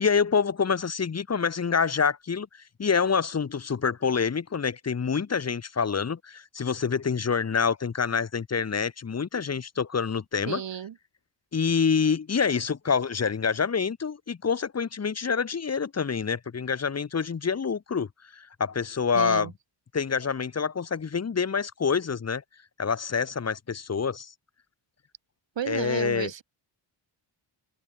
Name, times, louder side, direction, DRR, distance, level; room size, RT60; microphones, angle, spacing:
voice 1, 0.0-2.5 2.8-10.6 11.5-19.5 19.9-22.4 22.8-24.3 25.7-26.3, left 6 dB, 35° left, 1.7 m, -27 dB
voice 2, 10.5-11.0 19.1-19.5 25.6-26.4, right 9 dB, 70° right, 3.6 m, -33 dB
wide cardioid pair, 175°, 46 cm